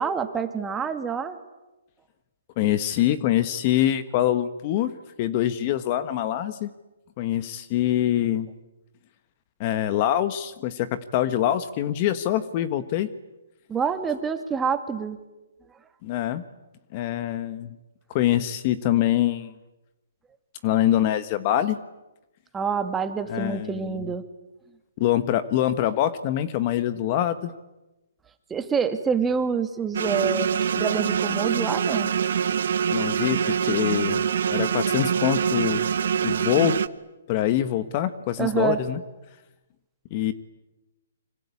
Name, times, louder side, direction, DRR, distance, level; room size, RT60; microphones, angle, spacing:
voice 1, 0.0-1.4 13.7-15.2 22.5-24.2 28.5-30.5 30.7-32.1 38.4-38.8, right 6 dB, 10° right, 8 dB, 2.0 m, -26 dB
voice 2, 2.6-4.9 5.2-6.7 7.2-8.5 9.6-13.1 16.0-16.4 16.9-17.8 18.1-19.5 20.6-21.8 23.3-24.1 25.0-27.5 32.9-34.2 34.5-35.9 36.2-36.8 37.3-39.0 40.1-40.3, left 12 dB, 35° left, 13 dB, 1.3 m, -24 dB
sound 1, 29.9-36.9, right 7 dB, 65° right, 1.1 m, -24 dB
26.5 x 25.5 x 8.5 m, 1.0 s
hypercardioid pair, 150°, 0 cm